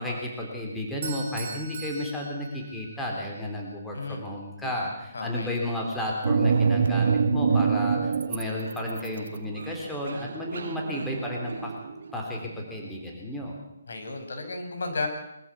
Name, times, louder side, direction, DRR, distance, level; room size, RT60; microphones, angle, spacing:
voice 1, 0.0-11.7 12.1-13.6, left 1 dB, 5° left, -2 dB, 3.5 m, -32 dB
Bell / Doorbell, 1.0-3.1, right 6 dB, 45° right, 7.0 m, -40 dB
voice 2, 5.1-5.5 13.9-15.1, left 3 dB, 70° left, 5 dB, 5.6 m, -33 dB
sound 1, 6.2-8.4 8.7-12.1, right 5 dB, 65° right, 1.6 m, -25 dB
23.5 x 14.0 x 8.4 m, 0.85 s
hypercardioid pair, 165°, 0 cm